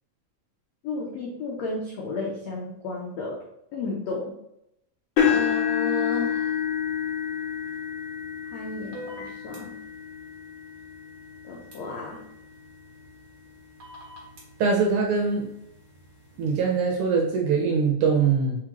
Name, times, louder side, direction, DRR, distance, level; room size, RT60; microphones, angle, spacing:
voice 1, 0.8-3.4 3.7-4.3 5.3-6.5 8.5-9.7 11.4-12.2, left 3 dB, 85° left, -3 dB, 1.5 m, -33 dB
sound 1, 5.2-13.2 13.8-14.1 14.5-14.6 16.0-16.1, left 8 dB, 55° left, 1.4 m, -29 dB
sound 2, 8.9-9.6 11.7-11.8 13.8-14.4, equal, 55° right, 1.1 m, -40 dB
voice 2, 14.6-15.5 16.4-18.6, right 5 dB, 80° right, 0 dB, 1.9 m, -22 dB
4.9 x 3.6 x 3.0 m, 0.79 s
omnidirectional pair, 4.1 m